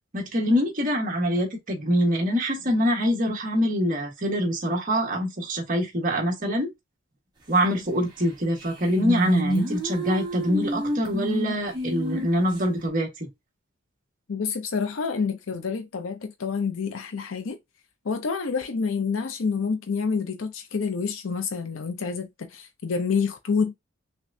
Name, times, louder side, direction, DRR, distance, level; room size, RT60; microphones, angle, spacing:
voice 1, 0.1-6.7 7.5-13.1, equal, 45° right, 1.4 m, -24 dB
sound 1, 8.2-8.3 8.6-12.6, right 1 dB, 20° right, 1.4 m, -29 dB
voice 2, 14.3-17.6 18.0-23.7, left 5 dB, 75° left, 0.6 m, -28 dB
5.9 x 2.2 x 2.6 m
head